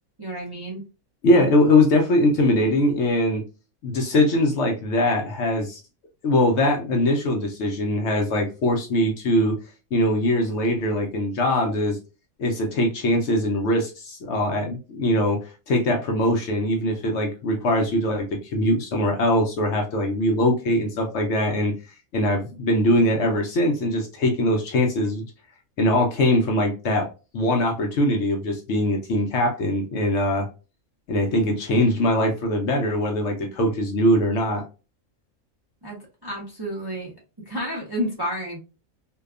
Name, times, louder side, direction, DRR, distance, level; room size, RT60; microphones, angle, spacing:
voice 1, 0.2-0.8 35.8-37.1 37.4-38.6, equal, 30° right, -3 dB, 0.4 m, -30 dB
voice 2, 1.2-3.4 3.8-5.8 6.2-9.6 9.9-12.0 12.4-21.7 22.1-25.2 25.8-27.1 27.3-30.5 31.1-34.6, left 1 dB, 65° left, 2 dB, 0.8 m, -22 dB
2.7 x 2.3 x 2.3 m, 0.31 s
omnidirectional pair, 1.5 m